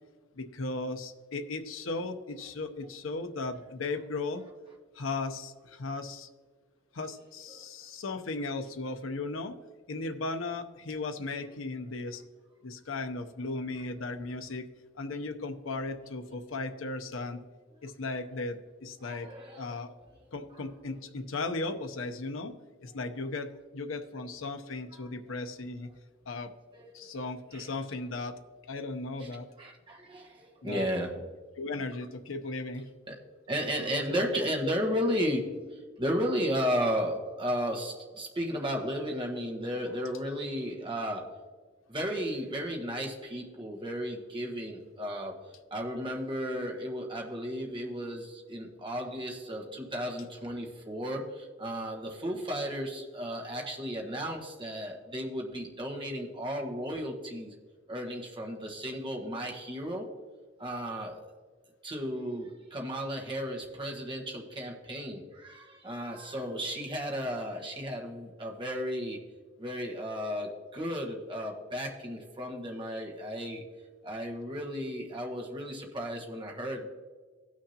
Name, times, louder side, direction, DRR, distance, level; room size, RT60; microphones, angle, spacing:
voice 1, 0.3-4.4 4.9-6.3 6.9-9.6 9.9-12.2 12.6-14.7 15.0-17.4 17.8-19.3 19.6-19.9 20.3-22.5 22.8-25.9 26.3-26.5 26.9-28.4 28.7-29.5 30.6-30.9 31.6-32.9 33.9-34.0 34.6-34.7, left 3 dB, 75° left, 6 dB, 0.8 m, -36 dB
voice 2, 19.0-19.8 25.0-25.1 26.7-27.1 27.5-27.7 29.2-29.3 29.6-31.3 33.1-33.2 33.5-41.4 41.9-45.4 45.7-57.5 57.9-60.1 60.6-61.3 61.8-69.2 69.6-73.6 74.0-76.9, equal, 25° right, 0 dB, 1.4 m, -34 dB
16.5 x 6.3 x 2.8 m, 1.5 s
head